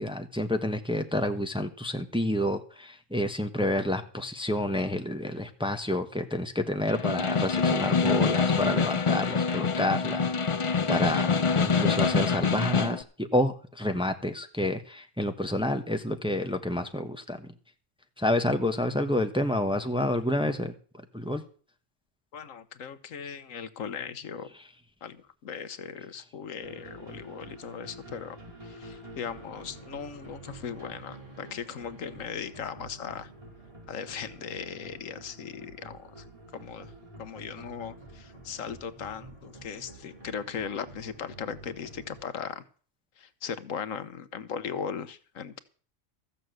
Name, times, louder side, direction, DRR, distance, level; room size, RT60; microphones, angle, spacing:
voice 1, 0.0-17.5 18.2-21.4, left 1 dB, 5° right, 6 dB, 1.0 m, -29 dB
Snare drum, 6.9-13.0, left 5 dB, 40° left, 0.4 m, -25 dB
voice 2, 22.3-24.5 25.0-28.4 28.6-33.3 33.9-36.3 36.5-36.9 37.2-42.6 43.2-45.6, left 7 dB, 80° left, 13 dB, 1.3 m, -38 dB
sound 1, 26.6-42.2, right 2 dB, 25° right, 4.9 m, -48 dB
14.5 x 7.1 x 7.9 m, 0.41 s
omnidirectional pair, 1.4 m